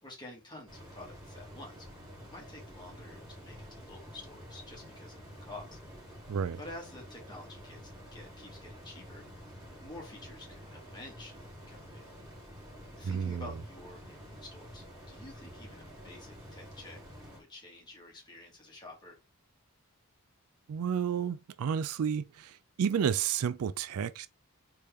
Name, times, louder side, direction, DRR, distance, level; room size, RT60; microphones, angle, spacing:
voice 1, 0.0-1.9 2.3-5.8 6.6-7.8 8.1-9.2 9.8-12.3 13.0-17.0 17.3-19.2, left 2 dB, 20° left, 1.8 m, -49 dB
sound 1, 0.7-17.4, equal, 20° right, 2.7 m, -49 dB
voice 2, 6.3-6.6 13.0-13.5 20.7-24.3, right 7 dB, 70° right, 0.3 m, -31 dB
4.2 x 3.6 x 3.4 m
head